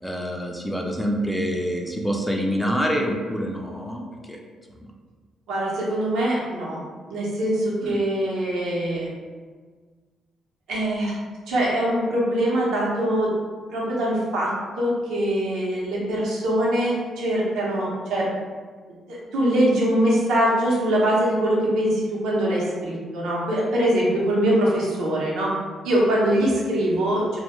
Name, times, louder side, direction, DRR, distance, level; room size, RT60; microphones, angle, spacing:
voice 1, 0.0-4.0 4.3-4.4 4.8-4.9 7.8-8.0, equal, 5° left, 0 dB, 0.3 m, -26 dB
voice 2, 5.5-6.8 7.1-9.1 10.7-11.2 11.5-13.3 13.7-14.5 14.8-18.3 19.1-25.5 25.8-27.4, right 1 dB, 85° right, -5 dB, 0.7 m, -23 dB
2.2 x 2.1 x 3.0 m, 1.5 s
cardioid pair, 90°, 0 cm